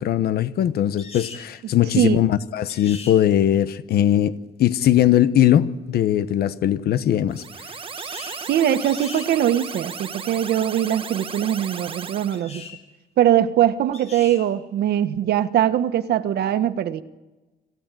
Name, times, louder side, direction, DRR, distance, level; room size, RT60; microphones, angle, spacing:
voice 1, 0.0-7.4, left 11 dB, 70° left, 13 dB, 1.1 m, -20 dB
sound 1, 1.0-1.5 2.7-3.2 8.0-8.4 8.8-9.3 12.3-12.8 13.9-14.4, left 4 dB, 40° left, 5.7 m, -39 dB
sound 2, 7.3-12.4, right 5 dB, 30° right, 1.5 m, -35 dB
voice 2, 8.5-12.6 13.2-17.0, right 11 dB, 75° right, 11 dB, 1.4 m, -21 dB
26.5 x 16.5 x 9.2 m, 1.1 s
cardioid pair, 135°, 17 cm